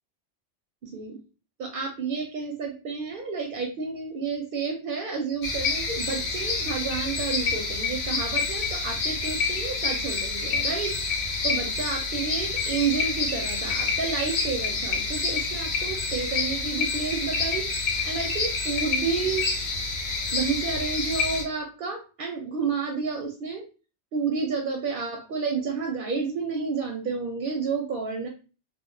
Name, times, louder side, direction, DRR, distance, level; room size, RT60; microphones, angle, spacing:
voice 1, 0.8-1.2 1.6-10.9 11.4-17.7 18.0-19.5 20.3-23.6 24.1-28.3, right 5 dB, 60° right, 2 dB, 0.6 m, -30 dB
sound 1, 5.4-21.4, left 4 dB, 75° left, 0.9 m, -28 dB
2.1 x 2.1 x 3.7 m, 0.35 s
omnidirectional pair, 1.1 m